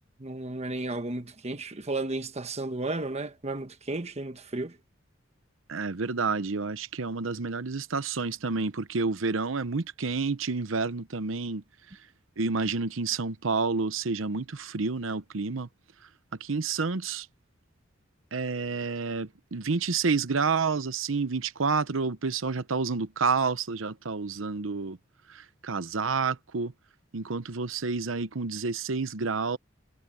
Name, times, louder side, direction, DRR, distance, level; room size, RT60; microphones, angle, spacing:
voice 1, 0.2-4.8, right 2 dB, 35° right, 1.3 m, -33 dB
voice 2, 5.7-11.6 12.4-15.7 16.4-17.3 18.3-25.0 25.3-26.7 27.1-29.6, right 4 dB, 75° right, 0.9 m, -29 dB
head